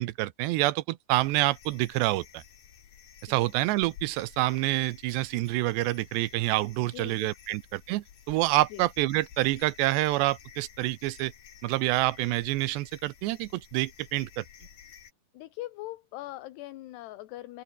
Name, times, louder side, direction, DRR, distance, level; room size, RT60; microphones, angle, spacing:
voice 1, 0.0-2.4 3.2-11.3 11.6-14.4, right 18 dB, 85° right, 2.9 m, -27 dB
sound 1, 1.2-15.1, left 9 dB, 50° left, 2.9 m, -52 dB
voice 2, 6.8-7.3 8.7-8.9 15.3-17.6, left 16 dB, 75° left, 3.1 m, -41 dB
open air
omnidirectional pair, 5.0 m